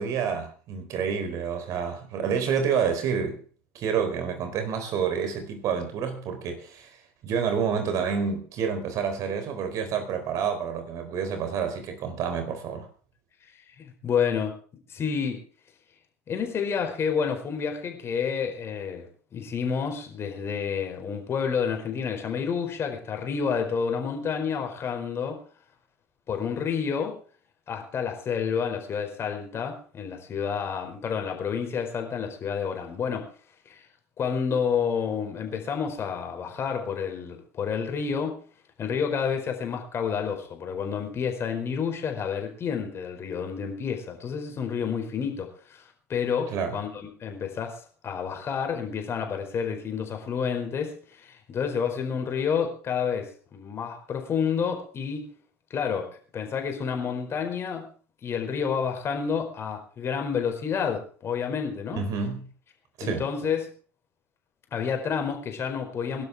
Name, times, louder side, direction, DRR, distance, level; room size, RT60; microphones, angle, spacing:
voice 1, 0.0-3.4 3.7-6.9 7.2-12.9 46.5-46.8 62.0-62.4 63.0-63.3, right 6 dB, 50° right, 4.2 m, -28 dB
voice 2, 13.8-14.5 14.9-15.4 16.3-25.4 26.3-27.2 27.7-33.3 33.6-33.8 34.2-38.4 38.8-45.8 46.1-55.3 55.7-57.9 58.2-62.0 63.0-63.7 64.7-66.2, left 6 dB, 35° left, 4.6 m, -29 dB
22.5 x 12.0 x 3.7 m
figure-of-eight pair, 70°, 7 cm